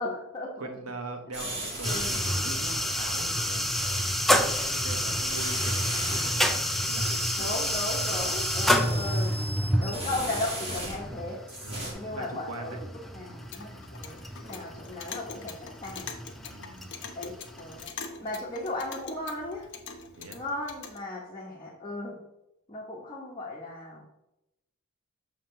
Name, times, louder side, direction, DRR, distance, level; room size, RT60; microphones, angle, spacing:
voice 1, 0.0-0.5 1.8-2.2 7.4-9.4 9.8-11.4 11.9-12.7 13.1-16.1 17.1-17.9 18.2-19.7 20.3-22.2 22.7-24.0, left 2 dB, 20° left, -4 dB, 0.9 m, -36 dB
voice 2, 0.6-7.9 9.7-10.1 11.6-12.8 13.2-13.4 16.5-17.0 20.2-20.4, right 2 dB, 75° right, 4 dB, 1.1 m, -42 dB
sound 1, 1.3-2.5 3.7-4.7 5.2-6.4 6.8-11.2 11.5-11.9, right 1 dB, 30° right, 2.0 m, -37 dB
sound 2, 1.8-17.8, equal, ahead, 0.4 m, -29 dB
Clock, 13.3-21.0, left 5 dB, 55° left, 0.9 m, -43 dB
7.2 x 3.0 x 5.6 m, 0.88 s
head